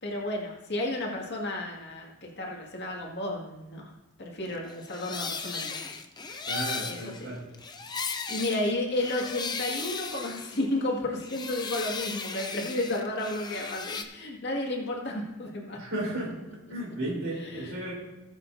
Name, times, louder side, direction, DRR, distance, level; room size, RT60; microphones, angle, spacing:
voice 1, 0.0-3.9 4.2-5.9 6.3-6.4 6.8-7.1 8.3-15.8 17.4-17.8, left 1 dB, 55° left, -1 dB, 2.2 m, -32 dB
sound 1, 4.7-10.9 11.2-14.0, left 5 dB, 20° left, 0.6 m, -36 dB
voice 2, 6.4-7.4 15.7-16.3 16.7-17.9, right 1 dB, 60° right, -4 dB, 4.1 m, -34 dB
19.0 x 7.3 x 2.8 m, 0.98 s
head